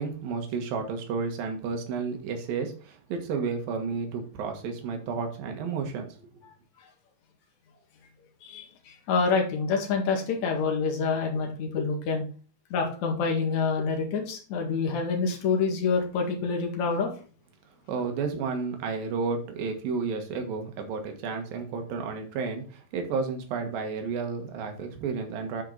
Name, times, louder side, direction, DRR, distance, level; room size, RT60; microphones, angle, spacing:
voice 1, 0.0-6.1 17.9-25.6, right 5 dB, 70° right, 4 dB, 3.1 m, -32 dB
voice 2, 8.4-12.2 12.7-17.1, left 4 dB, 55° left, 2 dB, 2.9 m, -27 dB
9.6 x 5.7 x 3.9 m, 0.39 s
omnidirectional pair, 4.4 m